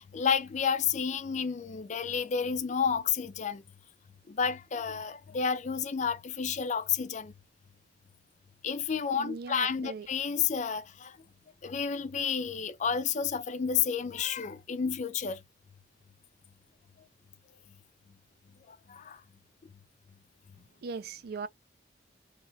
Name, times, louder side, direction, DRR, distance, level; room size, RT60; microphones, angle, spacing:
voice 1, 0.0-3.6 4.3-7.3 8.6-11.2 11.6-15.4 18.7-19.2, left 6 dB, 40° left, 0.4 m, -31 dB
voice 2, 9.2-10.1 20.8-21.5, right 4 dB, 55° right, 0.3 m, -39 dB
2.9 x 2.3 x 2.6 m
head